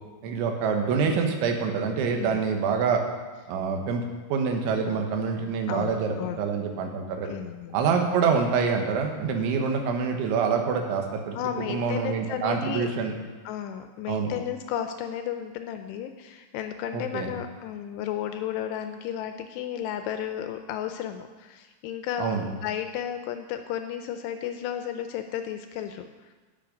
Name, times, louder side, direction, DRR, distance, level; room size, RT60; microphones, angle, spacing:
voice 1, 0.2-3.0 3.5-4.0 4.3-7.3 7.7-11.4 11.7-13.1 14.1-14.3 16.9-17.3 22.2-22.5, right 5 dB, 85° right, 3 dB, 3.6 m, -26 dB
voice 2, 5.7-6.5 7.2-7.8 11.3-12.9 13.5-26.3, left 10 dB, 85° left, 7 dB, 2.5 m, -33 dB
17.5 x 6.2 x 5.2 m, 1.3 s
omnidirectional pair, 5.3 m